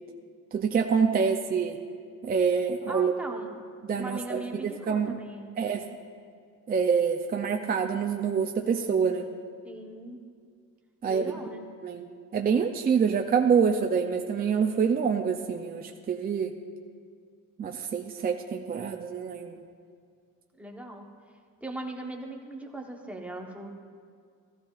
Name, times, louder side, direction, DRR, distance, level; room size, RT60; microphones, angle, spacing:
voice 1, 0.5-1.8 2.2-3.1 3.8-5.2 5.6-5.8 6.7-9.3 11.0-11.3 11.8-16.5 17.6-19.7, right 6 dB, 25° right, 4 dB, 0.4 m, -26 dB
voice 2, 2.9-3.5 3.9-5.6 9.6-10.2 11.1-11.6 20.6-21.1 21.6-23.7, right 1 dB, 5° right, 0 dB, 1.0 m, -39 dB
14.5 x 14.0 x 2.4 m, 2.2 s
cardioid pair, 140°, 36 cm